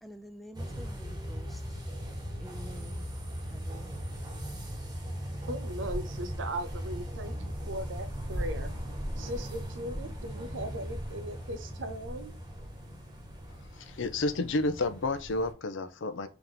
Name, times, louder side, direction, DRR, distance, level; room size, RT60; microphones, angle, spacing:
voice 1, 0.0-1.6 2.4-3.1 3.5-4.2, equal, ahead, 0.3 m, -49 dB
sound 1, 0.5-15.5, equal, 20° right, 1.1 m, -38 dB
voice 2, 5.5-8.7 9.2-12.3, right 1 dB, 80° right, 0.5 m, -38 dB
voice 3, 13.7-16.3, left 2 dB, 80° left, 0.5 m, -30 dB
3.4 x 2.9 x 3.9 m
head